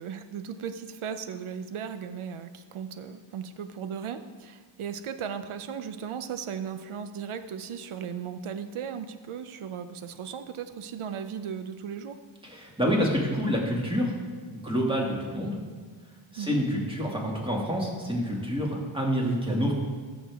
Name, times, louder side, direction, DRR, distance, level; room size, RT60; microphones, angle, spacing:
voice 1, 0.0-12.2 16.4-16.6, right 7 dB, 80° right, 10 dB, 0.7 m, -36 dB
voice 2, 12.4-14.2 14.5-15.6 16.3-19.7, equal, 10° right, -2 dB, 2.1 m, -27 dB
13.5 x 6.3 x 3.5 m, 1.5 s
cardioid pair, 80°, 49 cm